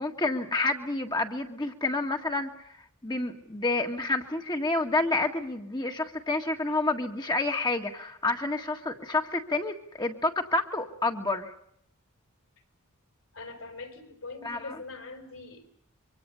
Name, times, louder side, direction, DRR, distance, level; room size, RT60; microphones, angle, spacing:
voice 1, 0.0-2.5 3.0-11.5 14.4-14.8, left 2 dB, 20° left, 4 dB, 1.7 m, -29 dB
voice 2, 13.3-15.7, left 3 dB, 65° left, 9 dB, 4.7 m, -42 dB
25.5 x 24.0 x 7.0 m, 0.70 s
head